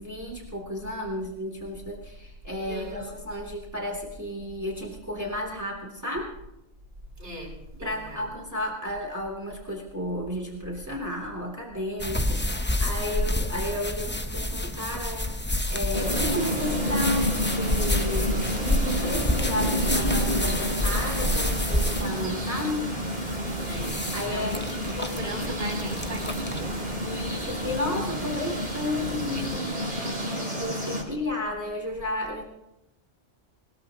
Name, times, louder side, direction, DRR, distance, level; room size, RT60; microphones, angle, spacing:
voice 1, 0.0-6.3 7.8-15.3 15.7-22.9 24.1-24.7 27.0-32.4, left 1 dB, 15° right, -1 dB, 2.7 m, -33 dB
voice 2, 2.7-3.2 7.2-7.5 7.8-8.2 23.6-24.6 24.9-27.2, equal, 60° right, -2 dB, 7.7 m, -38 dB
sound 1, 12.0-29.6, left 1 dB, 10° left, 0.8 m, -29 dB
sound 2, 15.9-31.0, equal, 45° right, 4.7 m, -30 dB
22.0 x 21.0 x 2.9 m, 0.90 s
omnidirectional pair, 1.2 m